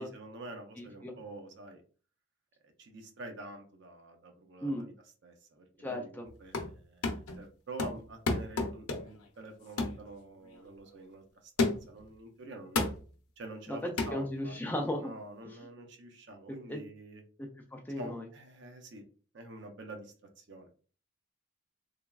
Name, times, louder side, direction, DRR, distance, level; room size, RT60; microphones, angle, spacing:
voice 1, 0.0-1.8 2.8-4.9 5.2-12.8 13.4-14.5 15.0-17.2 17.9-19.0 19.3-20.7, right 2 dB, 55° right, 4 dB, 0.5 m, -47 dB
voice 2, 0.8-1.1 4.6-4.9 5.8-6.3 13.7-15.1 15.4-15.6 16.5-16.8 17.4-18.2, left 1 dB, 10° left, 1 dB, 0.3 m, -36 dB
sound 1, 6.3-6.8 7.0-7.4 7.8-9.2 9.8-10.0 10.5-10.7 11.6-12.0 12.8-13.1 14.0-14.2, left 3 dB, 85° left, 0.6 m, -32 dB
3.3 x 2.3 x 2.2 m, 0.39 s
head